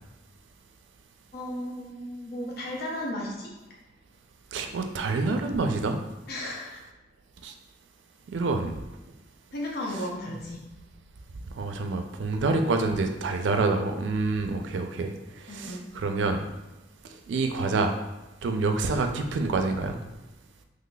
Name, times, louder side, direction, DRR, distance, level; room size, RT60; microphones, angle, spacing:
voice 1, 1.3-3.5 6.3-6.8 9.5-10.6 15.5-15.8, left 1 dB, 60° left, -3 dB, 0.6 m, -34 dB
voice 2, 4.5-6.0 7.4-7.5 8.3-8.7 11.6-15.1 15.4-16.4 17.3-17.9 18.4-20.0, right 3 dB, 85° right, 5 dB, 0.4 m, -27 dB
3.9 x 3.1 x 2.2 m, 1.0 s
head